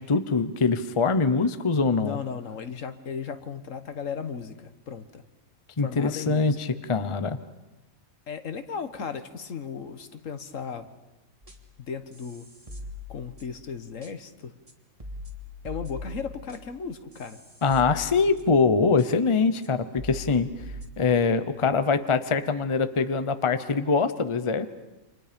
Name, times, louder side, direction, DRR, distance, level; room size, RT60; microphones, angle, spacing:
voice 1, 0.0-2.2 5.8-7.4 17.6-20.5 21.0-24.7, left 4 dB, 25° left, 11 dB, 0.8 m, -23 dB
voice 2, 2.0-5.2 5.8-6.6 8.3-10.9 11.8-12.5 13.1-14.5 15.6-17.4, left 6 dB, 65° left, 9 dB, 1.6 m, -36 dB
sound 1, 11.4-11.8 12.1-13.6 14.0-14.1 14.7-14.8 15.0-18.7 19.0-19.1 19.6-19.7 20.0-20.9, left 2 dB, 25° right, 2.2 m, -41 dB
29.0 x 26.0 x 5.2 m, 1.0 s
omnidirectional pair, 1.4 m